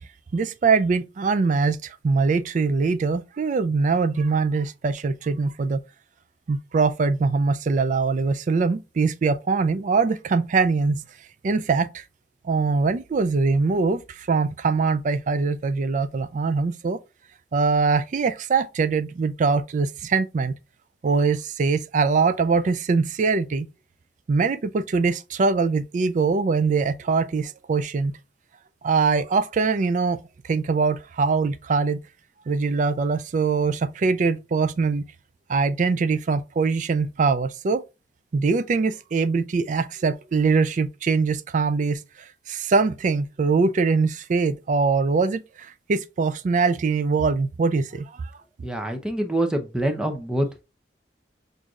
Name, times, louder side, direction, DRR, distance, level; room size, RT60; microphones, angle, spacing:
voice 1, 0.3-5.8 6.5-11.0 11.4-12.0 12.4-17.0 17.5-20.5 21.0-23.7 24.3-28.1 28.8-30.2 30.5-32.0 32.5-35.0 35.5-37.8 38.3-42.0 42.5-48.2, right 4 dB, 45° right, 0.3 m, -22 dB
voice 2, 48.6-50.6, right 1 dB, 5° right, 0.6 m, -25 dB
6.2 x 2.6 x 2.4 m
head